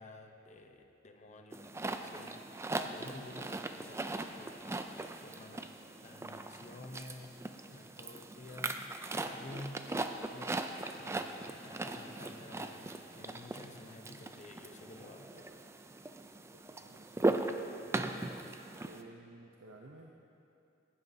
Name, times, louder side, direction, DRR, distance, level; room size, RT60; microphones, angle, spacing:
voice 1, 0.0-4.0 4.3-7.4 7.7-10.0 10.3-10.7 11.0-15.5, left 2 dB, 35° left, 4 dB, 0.7 m, -51 dB
sound 1, 1.5-19.0, right 2 dB, 15° right, 0.3 m, -39 dB
voice 2, 16.5-17.9 18.8-20.1, right 2 dB, 75° right, 0 dB, 0.7 m, -53 dB
15.5 x 11.0 x 2.7 m, 2.7 s
head